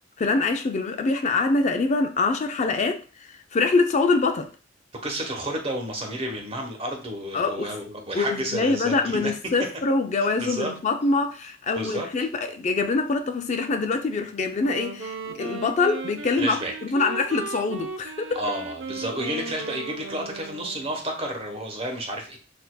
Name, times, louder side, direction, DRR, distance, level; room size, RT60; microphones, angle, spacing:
voice 1, 0.2-4.5 7.3-7.7 8.2-18.4, left 3 dB, 35° left, 0.4 m, -24 dB
voice 2, 5.0-9.3 10.4-10.7 11.7-12.1 16.4-16.7 18.3-22.4, right 1 dB, 30° right, 1.0 m, -31 dB
Wind instrument woodwind instrument, 14.5-21.0, right 4 dB, 80° right, 0.6 m, -36 dB
6.5 x 2.7 x 2.2 m
head